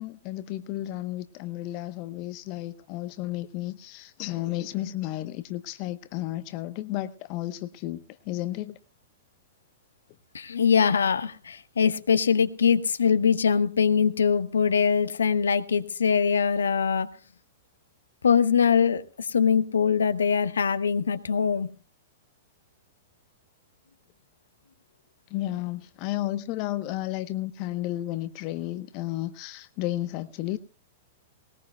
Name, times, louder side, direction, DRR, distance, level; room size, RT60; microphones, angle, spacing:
voice 1, 0.0-8.8 25.3-30.6, left 15 dB, 40° left, 0.8 m, -32 dB
voice 2, 10.3-17.1 18.2-21.7, left 6 dB, 70° left, 1.1 m, -23 dB
20.5 x 19.5 x 2.2 m
figure-of-eight pair, 100°, 0 cm